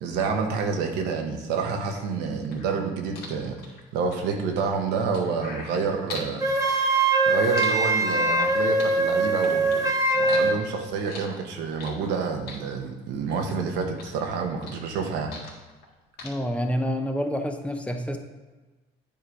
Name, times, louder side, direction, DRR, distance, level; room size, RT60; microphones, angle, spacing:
voice 1, 0.0-3.6 3.9-6.4 7.3-9.9 10.1-15.3, right 5 dB, 90° right, 3 dB, 1.1 m, -28 dB
sound 1, 1.9-6.3 6.7-8.5 8.8-9.9 10.2-12.2 12.5-13.6 13.8-15.9 16.2-16.3, left 3 dB, 75° left, 1.7 m, -41 dB
Wind instrument woodwind instrument, 6.4-10.6, right 2 dB, 20° right, 0.9 m, -22 dB
voice 2, 16.2-18.2, equal, 5° left, 5 dB, 0.7 m, -28 dB
8.7 x 3.9 x 4.8 m, 1.2 s
cardioid pair, 110°, 17 cm